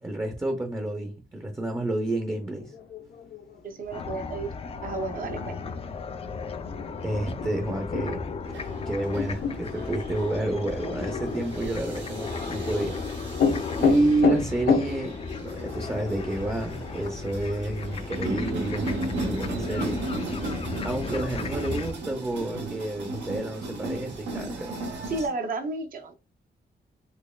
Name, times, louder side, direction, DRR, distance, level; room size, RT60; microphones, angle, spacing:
voice 1, 0.0-2.7 7.0-8.2 8.8-13.0 13.7-20.0 20.8-24.8, right 2 dB, 15° right, 0.5 m, -30 dB
sound 1, 2.4-14.8, left 6 dB, 90° left, 0.8 m, -31 dB
voice 2, 3.6-4.5 4.8-5.6 25.1-26.1, right 3 dB, 50° right, 0.6 m, -32 dB
sound 2, 3.9-21.9, left 4 dB, 35° left, 0.3 m, -35 dB
sound 3, 8.4-25.3, right 2 dB, 90° right, 0.9 m, -36 dB
4.1 x 3.0 x 2.2 m
wide cardioid pair, 140°, 18 cm